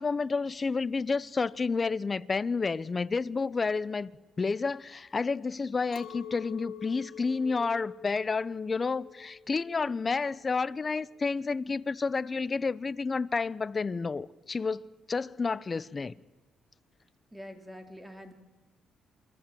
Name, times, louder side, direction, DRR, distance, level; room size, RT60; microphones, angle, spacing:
voice 1, 0.0-4.1 4.4-14.8 15.1-16.2, left 4 dB, 30° left, 0.8 m, -30 dB
Chink clink, 5.9-11.3, left 8 dB, 90° left, 2.8 m, -47 dB
voice 2, 17.3-18.3, equal, 10° right, 3.8 m, -45 dB
29.0 x 24.0 x 7.8 m
cardioid pair, 90°, 0 cm